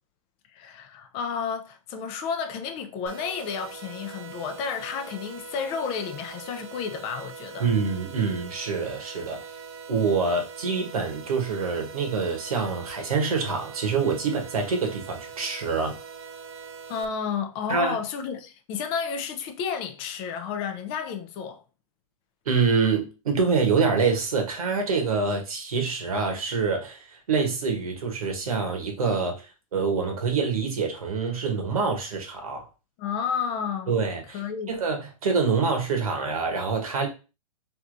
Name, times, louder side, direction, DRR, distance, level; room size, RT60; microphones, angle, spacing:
voice 1, 0.5-7.7 16.9-21.6 33.0-34.0 34.3-34.8, left 6 dB, 30° left, 0.4 m, -31 dB
sound 1, 3.1-17.1, right 6 dB, 50° right, 0.5 m, -42 dB
voice 2, 7.6-9.4 9.9-15.9 17.7-18.0 22.4-32.7 33.9-34.4 34.7-37.1, right 5 dB, 80° right, 1.2 m, -26 dB
3.3 x 2.7 x 2.5 m
hypercardioid pair, 130°, 18 cm